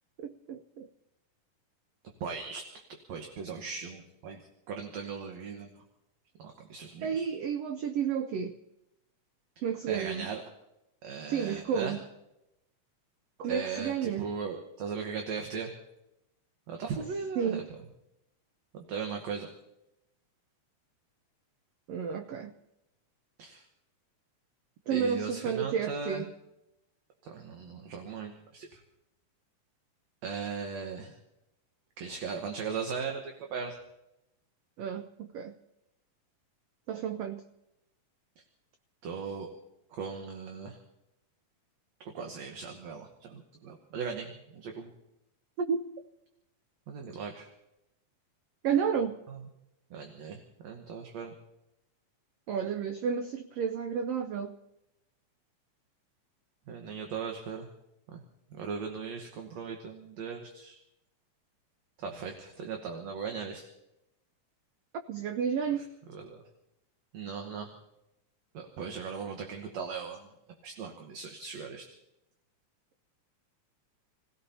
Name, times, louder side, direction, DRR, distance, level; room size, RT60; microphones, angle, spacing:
voice 1, 0.2-0.9 7.0-8.6 9.6-10.3 11.3-12.0 13.4-14.3 17.4-17.7 21.9-22.5 24.9-26.3 34.8-35.5 36.9-37.4 45.6-45.8 48.6-49.2 52.5-54.6 65.1-65.8, right 7 dB, 90° right, 1.3 m, -31 dB
voice 2, 2.2-2.6 3.1-5.8 6.4-7.3 9.9-10.4 11.0-12.0 13.5-15.7 16.7-17.6 18.7-19.5 23.4-23.6 24.9-26.2 27.2-28.8 30.2-31.2 32.0-33.8 39.0-39.5 39.9-40.8 42.1-44.9 46.9-47.5 49.3-49.4 49.9-51.3 56.7-57.7 58.1-58.2 58.5-60.8 62.0-63.7 65.8-65.9 66.1-66.4 67.1-67.7 68.5-70.3 70.6-71.9, right 5 dB, 65° right, 2.3 m, -38 dB
29.0 x 16.5 x 2.8 m
omnidirectional pair, 3.7 m